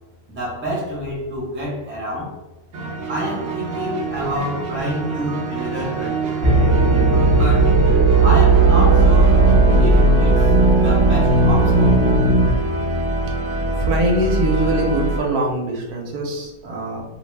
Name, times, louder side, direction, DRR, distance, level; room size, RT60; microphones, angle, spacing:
voice 1, 0.3-2.3 3.1-6.3 7.3-7.8 8.2-9.4 9.8-10.5 10.8-12.0, equal, 10° right, -5 dB, 0.6 m, -28 dB
sound 1, 2.7-15.2, right 1 dB, 65° right, 0.9 m, -24 dB
sound 2, 6.4-12.5, right 3 dB, 45° right, 0.3 m, -15 dB
voice 2, 13.8-17.0, right 1 dB, 80° right, 0 dB, 1.2 m, -22 dB
2.7 x 2.0 x 3.2 m, 1.0 s
omnidirectional pair, 1.6 m